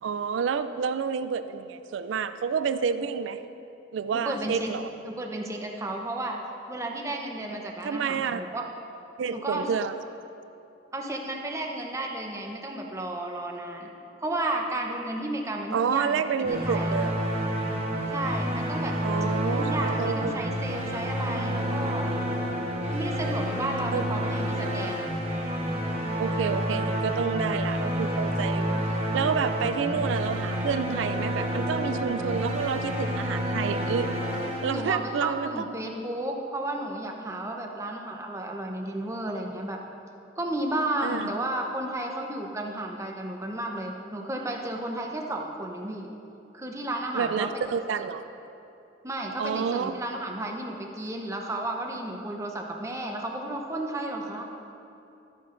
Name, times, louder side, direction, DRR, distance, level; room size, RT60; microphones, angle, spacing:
voice 1, 0.0-3.4 3.9-4.8 7.8-8.4 9.2-9.9 15.7-17.2 19.0-20.4 23.9-24.1 26.2-28.8 29.1-34.1 34.6-35.7 41.0-41.3 47.1-48.2 49.4-49.9, right 6 dB, 85° right, 11 dB, 0.4 m, -29 dB
voice 2, 4.1-4.7 5.0-6.4 6.7-8.7 9.3-9.7 10.9-13.9 14.2-16.9 18.1-19.0 19.4-22.1 22.9-25.1 34.7-39.8 40.4-46.1 46.5-47.6 48.0-48.1 49.0-54.4, right 1 dB, 15° right, 1 dB, 0.8 m, -33 dB
sound 1, 16.4-35.4, equal, 35° right, 1.1 m, -29 dB
13.0 x 9.5 x 2.6 m, 2.8 s
head